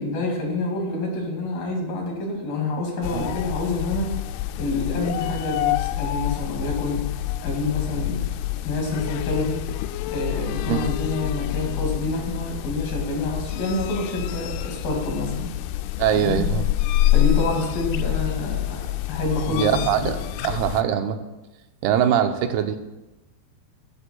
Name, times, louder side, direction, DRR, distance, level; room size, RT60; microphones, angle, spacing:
voice 1, 0.0-4.2 4.6-7.0 7.4-8.3 8.6-9.6 10.1-15.5 16.1-16.4 17.1-20.1, left 2 dB, 65° left, 0 dB, 4.0 m, -27 dB
sound 1, 3.0-20.8, left 15 dB, 85° left, 2.4 m, -27 dB
voice 2, 16.0-16.7 19.5-20.2 20.4-21.2 21.8-22.8, right 9 dB, 85° right, 6 dB, 2.8 m, -22 dB
14.5 x 14.0 x 2.3 m, 1.0 s
omnidirectional pair, 4.5 m